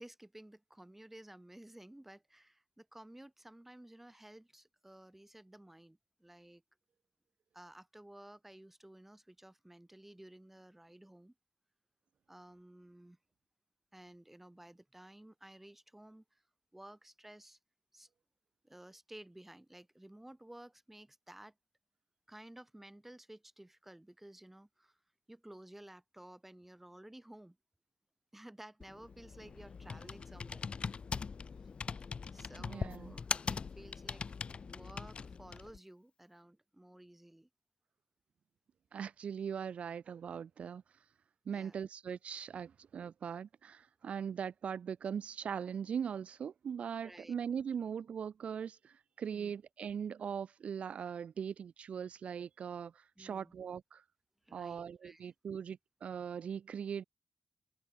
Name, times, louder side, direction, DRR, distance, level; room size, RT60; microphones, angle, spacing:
voice 1, 0.0-6.6 7.5-11.3 12.3-13.2 13.9-16.4 16.7-17.6 17.9-18.1 18.6-21.5 22.3-25.0 25.3-27.6 28.3-30.7 32.3-34.3 34.6-37.5 41.5-41.8 47.0-47.4 49.3-49.5 53.2-53.6 54.4-55.3, right 1 dB, 10° right, 1.9 m, -55 dB
Computer keyboard, 28.8-35.8, left 5 dB, 55° left, 1.2 m, -41 dB
voice 2, 32.6-33.1 38.9-40.8 41.5-54.0 54.5-57.0, right 7 dB, 75° right, 0.3 m, -40 dB
open air
wide cardioid pair, 90°, 2 cm